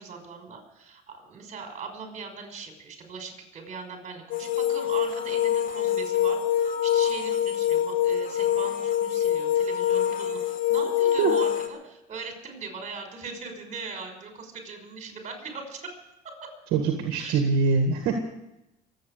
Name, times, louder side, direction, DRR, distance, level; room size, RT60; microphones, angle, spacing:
voice 1, 0.0-15.9 17.2-17.3, right 4 dB, 45° right, 4 dB, 5.8 m, -40 dB
sound 1, 4.3-11.7, left 10 dB, 55° left, 1.9 m, -25 dB
voice 2, 16.7-18.1, right 5 dB, 70° right, 4 dB, 2.0 m, -23 dB
23.0 x 9.0 x 6.7 m, 0.89 s
supercardioid pair, 90°, 16 cm